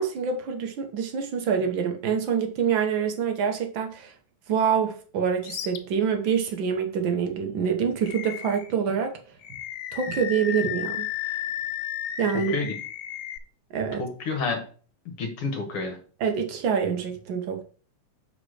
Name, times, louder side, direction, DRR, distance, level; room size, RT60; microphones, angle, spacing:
voice 1, 0.0-4.1 4.5-9.1 9.9-11.1 12.2-12.5 13.7-14.0 16.2-17.6, right 7 dB, 70° right, 5 dB, 1.1 m, -26 dB
Animal, 5.4-5.8 6.3-6.4 8.0-8.8 9.4-13.4, left 11 dB, 85° left, 2.1 m, -33 dB
voice 2, 14.0-14.6 15.1-16.0, left 4 dB, 60° left, 3 dB, 1.8 m, -29 dB
6.6 x 4.0 x 6.3 m, 0.41 s
omnidirectional pair, 3.4 m